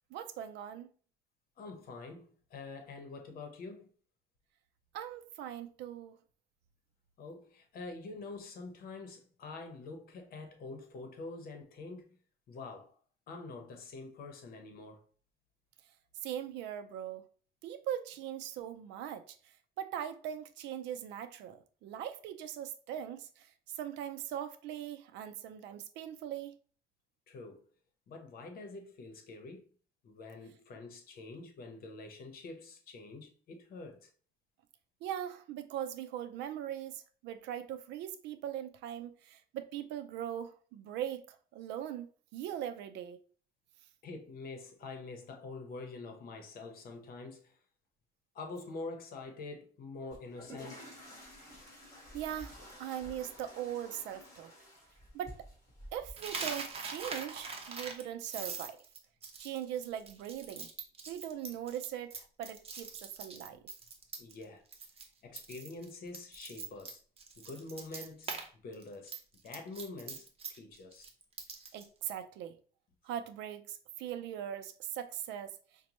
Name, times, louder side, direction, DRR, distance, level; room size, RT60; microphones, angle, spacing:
voice 1, 0.1-0.9 4.9-6.2 16.2-17.2 17.6-19.4 19.8-23.5 23.7-26.5 35.0-43.2 52.1-52.5 52.8-54.5 55.1-55.4 55.9-58.8 59.4-60.7 61.1-63.6 71.7-72.6 73.0-75.6, right 10 dB, 90° right, 0.5 m, -40 dB
voice 2, 1.6-3.9 7.2-12.1 12.5-12.9 13.3-15.0 27.3-27.6 28.1-29.7 30.0-34.1 44.0-47.5 48.3-50.9 64.2-64.6 65.2-67.0 67.4-69.1 69.4-71.1, left 3 dB, 60° left, 0.9 m, -46 dB
sound 1, 50.1-56.1, equal, 15° left, 1.8 m, -51 dB
Coin (dropping), 56.2-64.4 64.7-65.0 65.3-68.5 68.7-71.9, right 4 dB, 35° right, 0.8 m, -43 dB
5.1 x 2.2 x 2.9 m
cardioid pair, 120°, 18 cm